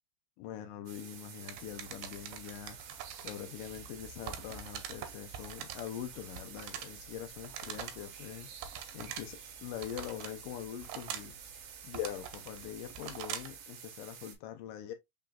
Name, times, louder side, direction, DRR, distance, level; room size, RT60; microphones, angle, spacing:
voice 1, 0.4-2.8 3.2-8.5 8.9-11.4 11.8-14.9, left 10 dB, 80° left, 2.1 m, -43 dB
sound 1, 0.9-14.4, right 7 dB, 65° right, 2.3 m, -50 dB
sound 2, 1.5-13.6, right 9 dB, 85° right, 2.4 m, -45 dB
5.6 x 3.8 x 2.3 m
omnidirectional pair, 4.3 m